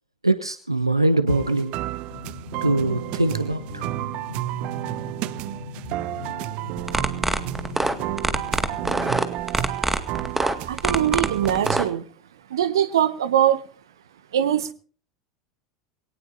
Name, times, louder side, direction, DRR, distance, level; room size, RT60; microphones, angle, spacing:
voice 1, 0.2-1.7 2.6-3.9, right 2 dB, 90° right, 11 dB, 1.1 m, -22 dB
sound 1, 1.3-11.9, right 16 dB, 50° right, 0.8 m, -31 dB
sound 2, 2.1-9.3, left 5 dB, 80° left, 1.4 m, -40 dB
sound 3, 6.8-11.8, right 1 dB, 5° right, 2.0 m, -24 dB
voice 2, 10.7-12.0 12.5-13.6 14.3-14.7, right 10 dB, 70° right, 14 dB, 1.4 m, -22 dB
21.5 x 18.5 x 2.7 m, 0.41 s
figure-of-eight pair, 75°, 2 cm